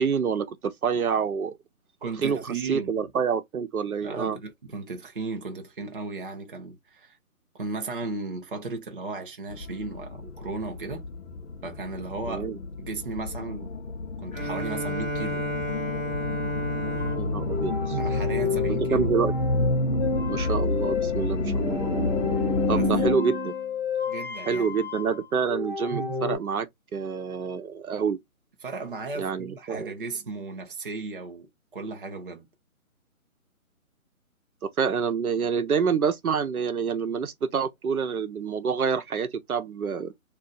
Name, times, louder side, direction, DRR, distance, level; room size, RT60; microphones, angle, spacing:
voice 1, 0.0-1.6 2.2-4.4 12.3-12.6 17.2-18.0 18.6-19.3 20.3-22.1 22.7-23.5 24.5-28.2 29.1-29.9 34.8-40.2, right 6 dB, 80° right, 0.9 m, -27 dB
voice 2, 2.0-2.9 4.0-7.2 7.5-11.0 11.6-12.4 12.8-13.8 14.2-15.4 18.0-19.1 22.6-22.9 24.0-24.7 28.6-32.5, right 3 dB, 40° right, 0.6 m, -35 dB
sound 1, 9.5-23.1, left 4 dB, 60° left, 0.6 m, -31 dB
Bowed string instrument, 14.3-19.0, equal, 10° left, 1.2 m, -33 dB
sound 2, 17.0-26.4, left 2 dB, 20° right, 1.2 m, -29 dB
2.6 x 2.5 x 3.8 m
hypercardioid pair, 175°, 43 cm